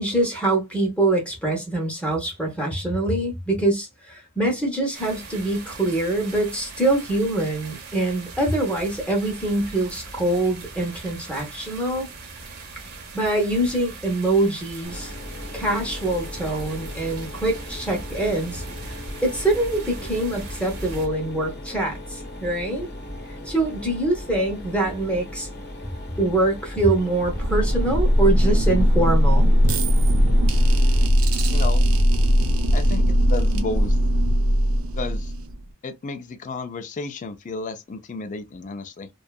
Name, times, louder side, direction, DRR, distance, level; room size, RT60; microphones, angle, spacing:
voice 1, 0.0-12.1 13.1-15.1 15.5-18.9 19.2-22.9 23.3-25.5 26.2-29.6, right 2 dB, 5° left, 0.7 m, -24 dB
sound 1, 4.9-21.1, right 3 dB, 50° right, 0.8 m, -40 dB
Mechanisms, 14.8-31.0, left 1 dB, 55° left, 0.8 m, -37 dB
sound 2, 27.2-35.7, equal, 85° right, 0.6 m, -19 dB
voice 2, 31.5-31.9 32.7-34.0 34.9-35.3 35.8-39.1, left 3 dB, 40° left, 0.4 m, -32 dB
2.6 x 2.3 x 2.2 m
head